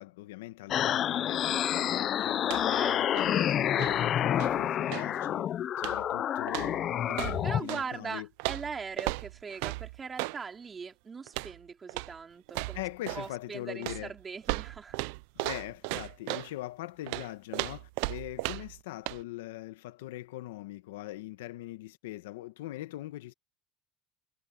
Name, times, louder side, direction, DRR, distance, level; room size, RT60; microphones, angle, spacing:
voice 1, 0.0-5.5 5.8-8.3 12.7-14.1 15.4-23.3, left 16 dB, 90° left, 1.4 m, -41 dB
sound 1, 0.7-7.6, left 10 dB, 45° left, 0.6 m, -28 dB
sound 2, 2.4-2.8 3.1-5.2 5.8-6.1 6.5-7.9 8.4-10.4 11.3-11.6 11.9-12.2 12.5-13.3 13.8-16.5 17.1-18.8 19.1-19.2, right 25 dB, 75° right, 0.5 m, -36 dB
voice 2, 2.7-3.3 7.4-12.8 13.1-15.0, right 5 dB, 25° right, 4.0 m, -40 dB
supercardioid pair, 105°, 0 cm